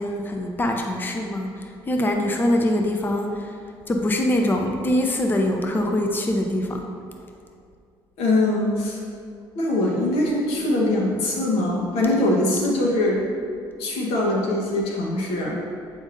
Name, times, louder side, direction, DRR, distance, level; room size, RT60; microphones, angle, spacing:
voice 1, 0.0-3.6 3.9-6.8, left 1 dB, 20° left, 3 dB, 0.6 m, -23 dB
voice 2, 8.2-9.0 9.5-13.2 13.8-15.6, left 1 dB, 80° left, -2 dB, 1.2 m, -22 dB
7.9 x 5.0 x 2.6 m, 2.4 s
supercardioid pair, 85°, 10 cm